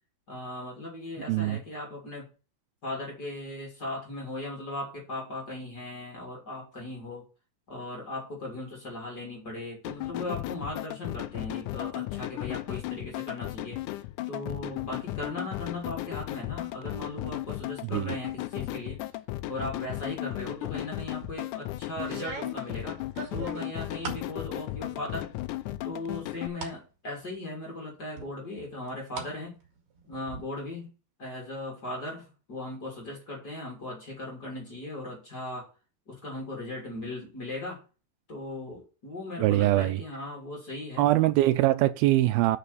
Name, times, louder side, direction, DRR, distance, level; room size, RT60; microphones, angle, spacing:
voice 1, 0.3-2.3 2.8-7.2 7.7-13.8 14.3-19.0 19.5-23.0 23.3-25.3 25.8-29.5 30.1-30.9 31.2-35.7 36.1-37.8 38.3-41.1, left 2 dB, 25° left, 3.2 m, -38 dB
voice 2, 1.3-1.6 17.8-18.1 39.4-40.0 41.0-42.6, right 15 dB, 85° right, 2.4 m, -23 dB
sound 1, 9.8-26.5, left 16 dB, 85° left, 1.8 m, -35 dB
sound 2, 21.0-21.4 22.0-24.3 24.7-25.3 25.7-26.8 27.2-27.3 28.2-29.3 29.6-30.4, right 5 dB, 45° right, 2.6 m, -40 dB
6.8 x 5.9 x 6.8 m
omnidirectional pair, 4.3 m